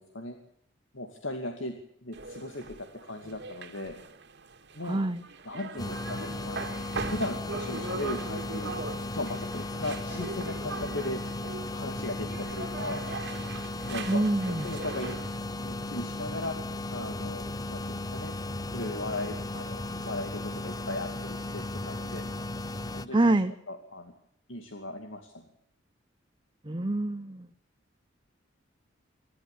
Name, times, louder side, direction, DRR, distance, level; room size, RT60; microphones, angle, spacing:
voice 1, 0.9-1.8 2.0-2.7 3.0-4.0 4.7-5.0 5.4-8.7 9.1-11.2 11.7-13.0 13.8-15.2 15.6-16.6 16.9-18.3 18.7-22.2 22.9-23.4 23.7-24.1 24.5-25.5, left 2 dB, 75° left, 4 dB, 2.6 m, -37 dB
sound 1, 2.1-15.4, right 3 dB, 60° right, 2.2 m, -40 dB
voice 2, 4.8-5.2 14.1-14.6 23.1-23.5 26.7-27.5, right 2 dB, 25° right, 9 dB, 0.8 m, -26 dB
sound 2, 5.8-23.1, left 2 dB, 20° left, 0.8 m, -36 dB
26.5 x 12.5 x 8.5 m, 0.74 s
head